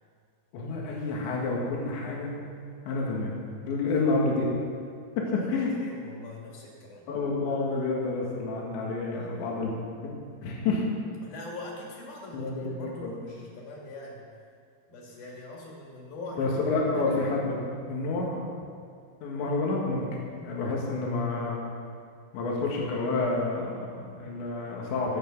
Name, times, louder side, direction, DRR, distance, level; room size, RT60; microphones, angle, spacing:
voice 1, 0.5-2.3 2.9-3.4 3.6-4.4 5.3-5.7 7.1-9.7 10.0-10.8 12.3-13.1 16.4-18.4 19.2-20.1 20.3-21.6 22.3-25.2, left 3 dB, 80° left, -2 dB, 4.3 m, -29 dB
voice 2, 5.3-7.1 9.1-9.5 11.2-14.2 14.9-16.5 16.9-17.2, left 2 dB, 55° left, -3 dB, 4.3 m, -43 dB
22.5 x 8.5 x 5.6 m, 2.3 s
omnidirectional pair, 5.1 m